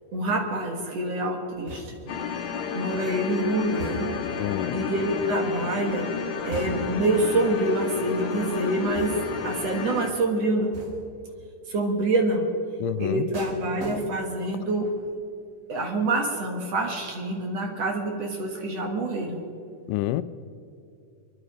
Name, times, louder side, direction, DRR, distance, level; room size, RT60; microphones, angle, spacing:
voice 1, 0.1-2.1 2.7-4.2 4.7-6.1 6.5-9.2 9.4-10.8 11.7-12.5 13.0-14.9 15.7-19.4, right 2 dB, 55° right, 2.4 m, -26 dB
sound 1, 1.7-2.2 3.8-4.4 6.5-7.1 9.0-9.5 10.7-11.2 13.3-14.5 14.8-15.2, right 1 dB, 35° right, 1.4 m, -39 dB
sound 2, 2.1-10.1, left 6 dB, 60° left, 2.3 m, -32 dB
voice 2, 4.4-4.8 12.8-13.3 19.9-20.2, left 16 dB, 85° left, 2.1 m, -28 dB
25.5 x 11.0 x 5.0 m
omnidirectional pair, 3.8 m